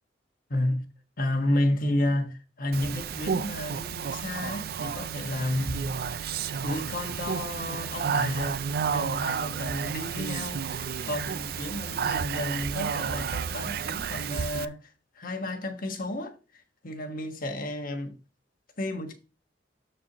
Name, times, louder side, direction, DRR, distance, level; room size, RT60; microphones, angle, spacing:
voice 1, 0.5-0.8 1.2-6.0 6.6-8.6 8.9-14.9 15.1-18.1 18.8-19.1, left 1 dB, 50° left, 1.4 m, -31 dB
Speech, 2.7-14.7, right 6 dB, 55° right, 0.4 m, -31 dB
13.5 x 4.4 x 2.9 m
head